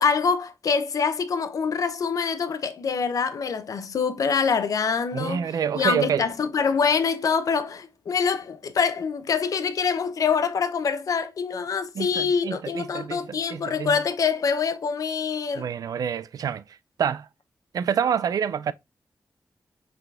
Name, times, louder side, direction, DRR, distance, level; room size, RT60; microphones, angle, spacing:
voice 1, 0.0-5.5 5.7-15.7, left 6 dB, 70° left, 0.6 m, -25 dB
voice 2, 5.1-6.3 11.9-14.0 15.5-17.3 17.7-18.7, right 8 dB, 90° right, 0.4 m, -27 dB
5.7 x 3.6 x 2.4 m
wide cardioid pair, 120°, 6 cm